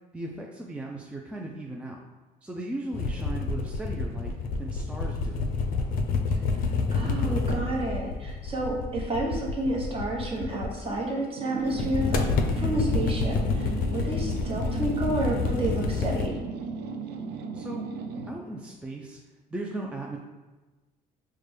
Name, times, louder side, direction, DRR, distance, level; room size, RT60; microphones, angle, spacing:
voice 1, 0.1-2.0 2.4-4.3 4.6-5.5 17.5-17.9 18.3-19.2 19.5-20.2, right 2 dB, 5° right, -2 dB, 0.3 m, -37 dB
sound 1, 2.9-11.0 11.7-16.3, left 4 dB, 60° left, 0.4 m, -28 dB
voice 2, 6.9-12.3 12.5-16.4, right 1 dB, 35° right, -2 dB, 1.0 m, -30 dB
sound 2, 11.4-18.4, right 4 dB, 75° right, 0.4 m, -36 dB
4.9 x 2.2 x 3.2 m, 1.2 s
cardioid pair, 110°, 17 cm